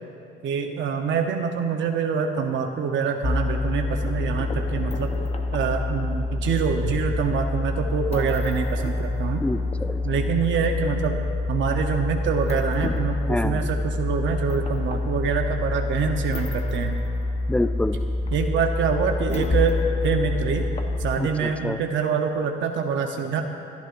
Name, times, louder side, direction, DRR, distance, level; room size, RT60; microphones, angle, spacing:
voice 1, 0.4-5.1 5.5-9.4 10.0-11.2 11.5-17.0 18.3-19.8 20.0-20.7 21.0-23.4, right 6 dB, 70° right, 4 dB, 0.9 m, -25 dB
sound 1, 3.2-21.0, left 2 dB, 30° left, 0.9 m, -27 dB
voice 2, 9.4-10.0 13.3-13.6 17.5-18.0 21.2-21.8, left 2 dB, 5° left, 10 dB, 0.5 m, -26 dB
27.0 x 11.0 x 2.6 m, 2.7 s
cardioid pair, 90°, 20 cm